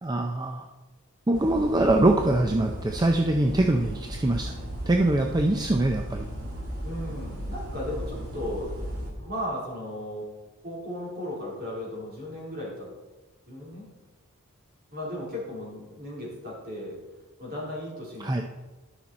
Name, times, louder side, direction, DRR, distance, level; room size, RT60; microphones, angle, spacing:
voice 1, 0.0-0.7 1.3-4.6 4.9-6.3 18.2-18.4, right 1 dB, 20° right, 3 dB, 0.4 m, -23 dB
sound 1, 1.3-9.1, equal, 75° right, 2.3 m, -36 dB
voice 2, 6.8-8.7 9.2-10.2 10.6-12.9 13.5-13.9 14.9-17.0 17.4-18.4, left 1 dB, 45° right, -5 dB, 3.5 m, -35 dB
12.0 x 5.9 x 4.1 m, 1.2 s
head